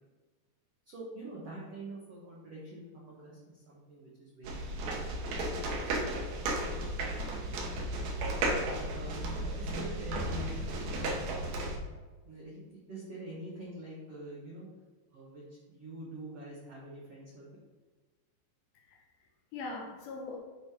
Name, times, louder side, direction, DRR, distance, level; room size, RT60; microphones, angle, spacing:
voice 1, 0.8-4.6 8.9-10.6 12.2-14.7 15.1-17.5, right 2 dB, 85° right, -6 dB, 1.3 m, -45 dB
sound 1, 4.4-11.8, right 1 dB, 65° right, 2.4 m, -34 dB
voice 2, 18.7-20.4, left 3 dB, 80° left, 1 dB, 2.2 m, -42 dB
8.8 x 4.8 x 3.6 m, 1.3 s
omnidirectional pair, 5.0 m